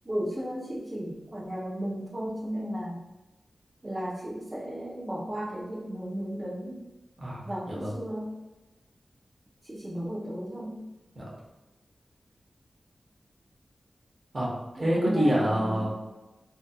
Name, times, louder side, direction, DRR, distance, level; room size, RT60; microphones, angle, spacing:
voice 1, 0.0-3.0 3.8-6.8 7.4-8.3 9.7-10.8 14.8-15.9, equal, 25° right, -7 dB, 0.7 m, -34 dB
voice 2, 7.2-7.9 11.1-11.3 14.3-15.9, equal, 45° right, -4 dB, 1.1 m, -27 dB
3.6 x 2.8 x 2.2 m, 1.1 s
cardioid pair, 60°, 0 cm